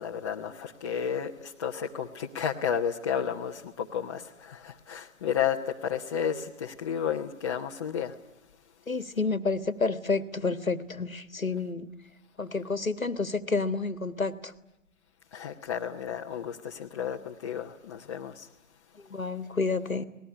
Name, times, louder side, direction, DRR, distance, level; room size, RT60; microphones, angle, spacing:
voice 1, 0.0-8.2 15.3-18.5 19.0-19.1, left 8 dB, 20° left, 1.0 m, -32 dB
voice 2, 8.9-11.9 12.4-14.5 19.1-20.0, left 4 dB, 90° left, 1.6 m, -29 dB
26.5 x 19.5 x 9.9 m
figure-of-eight pair, 140°, 40 cm